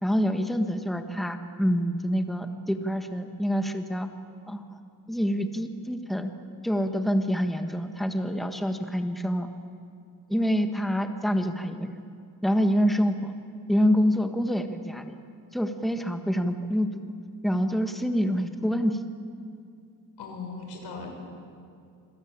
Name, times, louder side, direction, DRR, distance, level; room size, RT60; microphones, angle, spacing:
voice 1, 0.0-4.1 4.5-4.8 5.1-6.3 6.6-9.5 10.3-12.0 12.4-13.3 13.7-15.1 15.5-17.1 17.4-19.0, equal, ahead, 6 dB, 1.5 m, -26 dB
voice 2, 20.2-21.1, left 4 dB, 85° left, 2 dB, 6.9 m, -38 dB
27.5 x 21.5 x 8.8 m, 2.3 s
cardioid pair, 135°, 40 cm